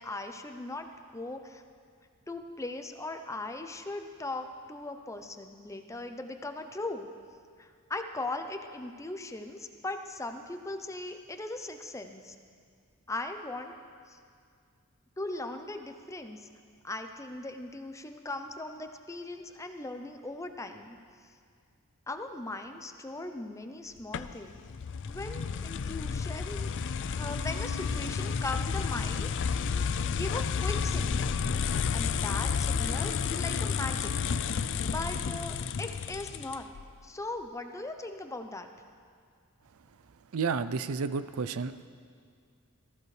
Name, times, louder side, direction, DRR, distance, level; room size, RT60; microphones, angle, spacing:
voice 1, 0.0-1.6 2.3-7.1 7.6-12.3 13.1-13.7 14.1-14.2 15.2-16.5 16.8-21.0 22.1-24.6 25.0-26.7 27.0-29.3 29.7-34.1 34.8-36.7 37.0-38.7, left 2 dB, 15° left, 6 dB, 0.6 m, -39 dB
sound 1, 24.1-36.8, left 6 dB, 55° left, 0.4 m, -31 dB
voice 2, 40.3-41.9, right 5 dB, 75° right, 13 dB, 0.5 m, -31 dB
18.5 x 14.5 x 3.3 m, 2.2 s
head